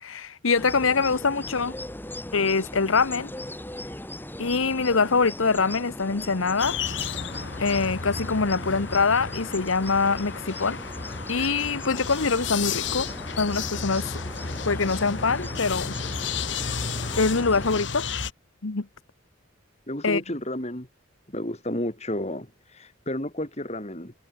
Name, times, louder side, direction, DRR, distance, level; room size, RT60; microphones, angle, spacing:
voice 1, 0.0-1.7 2.3-3.3 4.4-6.8 7.6-10.8 11.3-13.1 13.4-14.1 14.6-15.9 17.2-18.1 18.6-18.9 20.0-20.2, left 4 dB, 85° left, 1.1 m, -24 dB
sound 1, 0.5-17.8, left 1 dB, 10° left, 4.4 m, -39 dB
sound 2, 6.6-18.3, left 5 dB, 60° left, 1.9 m, -33 dB
voice 2, 19.9-20.9 21.3-24.1, left 1 dB, 35° left, 5.6 m, -31 dB
head